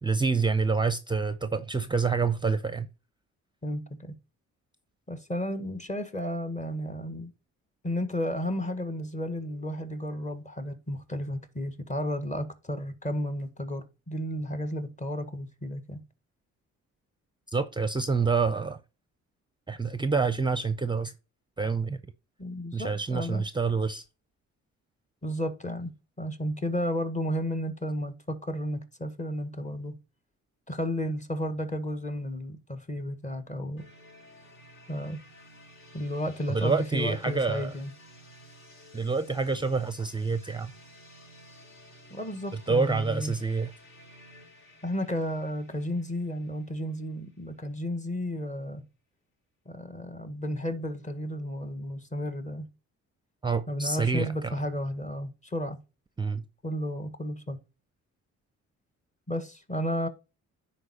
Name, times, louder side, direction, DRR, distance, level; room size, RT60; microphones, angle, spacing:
voice 1, 0.0-2.9 17.5-18.8 19.7-21.1 21.6-22.0 22.7-24.0 36.5-37.7 38.9-40.7 42.5-43.7 53.4-54.5 56.2-56.4, right 4 dB, 15° right, 0.6 m, -27 dB
voice 2, 3.6-4.1 5.1-7.3 7.8-16.0 22.4-23.4 25.2-30.0 30.7-33.8 34.9-35.2 35.9-37.9 42.1-43.3 44.8-48.8 49.6-52.7 53.7-55.8 56.6-57.6 59.3-60.1, equal, 25° left, 1.5 m, -33 dB
sound 1, 33.8-47.5, equal, 45° left, 4.8 m, -53 dB
10.0 x 4.4 x 4.1 m
cardioid pair, 90°, 30 cm